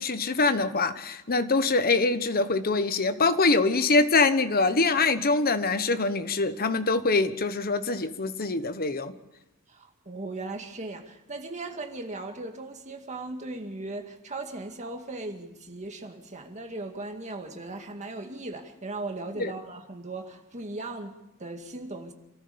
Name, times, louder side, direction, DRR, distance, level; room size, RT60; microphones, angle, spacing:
voice 1, 0.0-9.1 19.4-19.5, left 3 dB, 45° left, 1.2 m, -24 dB
voice 2, 9.7-22.1, right 2 dB, 35° right, 2.1 m, -38 dB
27.5 x 14.0 x 7.0 m
head